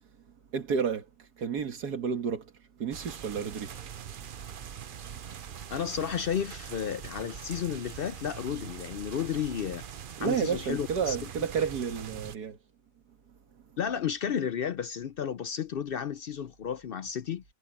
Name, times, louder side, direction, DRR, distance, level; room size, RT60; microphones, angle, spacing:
voice 1, 0.5-1.1 1.4-2.5 2.8-3.8 5.1-5.2 10.2-12.6, right 6 dB, 80° right, 2.1 m, -31 dB
sound 1, 2.9-12.4, right 8 dB, 50° right, 0.6 m, -43 dB
voice 2, 5.7-9.8 10.2-11.2 13.8-17.4, left 8 dB, 65° left, 0.5 m, -32 dB
omnidirectional pair, 1.7 m